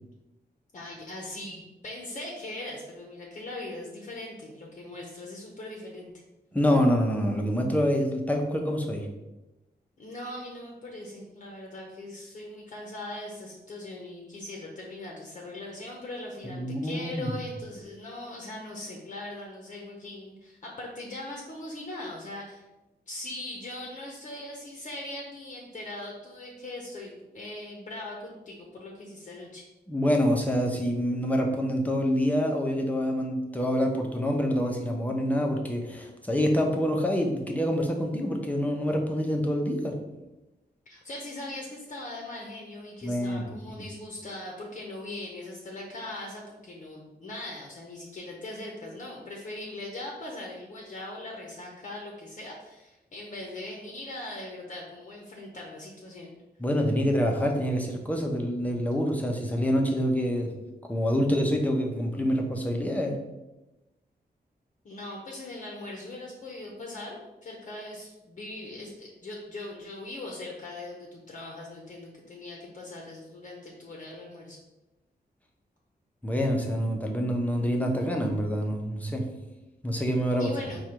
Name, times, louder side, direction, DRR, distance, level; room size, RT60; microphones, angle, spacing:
voice 1, 0.7-6.1 10.0-22.7 23.1-29.6 40.9-56.3 64.8-74.6 80.4-80.8, left 1 dB, 50° left, -1 dB, 0.7 m, -40 dB
voice 2, 6.5-9.1 16.5-17.3 29.9-40.0 43.0-43.4 43.8-43.9 56.6-60.5 60.9-63.2 76.2-79.3 79.8-80.5, equal, 10° left, 1 dB, 0.6 m, -26 dB
4.9 x 2.3 x 4.4 m, 1.0 s
wide cardioid pair, 160°, 17 cm